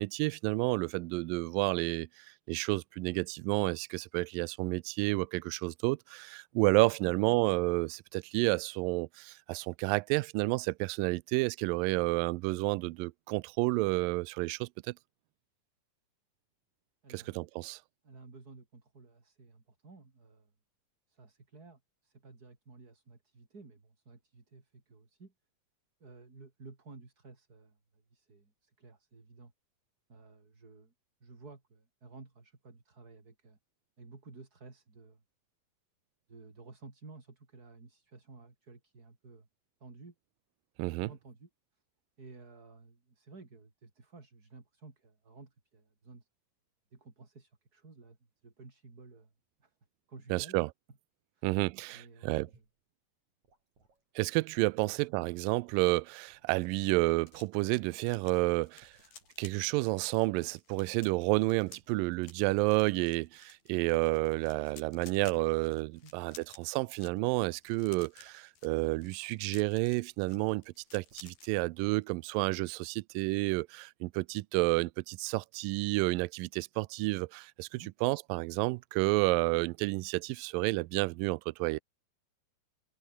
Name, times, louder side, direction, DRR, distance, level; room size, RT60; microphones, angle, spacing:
voice 1, 0.0-2.1 2.5-14.9 17.1-17.8 40.8-41.1 50.3-50.7 51.4-52.5 54.2-58.9 59.4-70.6 70.9-81.8, right 23 dB, 80° right, 2.1 m, -30 dB
voice 2, 7.0-7.4 17.0-17.5 18.0-20.5 21.1-25.3 26.0-29.5 30.1-30.9 31.2-33.6 34.0-35.2 36.3-39.5 39.8-40.1 41.0-41.5 42.2-46.3 46.9-48.2 48.4-49.3 49.6-49.7 50.1-50.7 51.3-51.7 51.9-52.6 54.8-54.9 66.0-66.1 77.7-77.9, right 3 dB, 25° right, 3.7 m, -54 dB
sound 1, 52.5-52.8 53.4-54.1 54.5-55.8 56.3-58.3 58.8-59.4 59.8-60.4 60.7-62.0 62.2-63.4 63.7-65.7 66.1-66.4 67.2-67.5 68.2-68.4 68.7-69.1 69.3-70.1 70.5-70.8 71.1-71.7, right 3 dB, 50° right, 7.9 m, -69 dB
sound 2, 56.3-71.5 71.9-72.1 72.4-72.7, left 6 dB, 75° left, 6.6 m, -56 dB
open air
omnidirectional pair, 4.4 m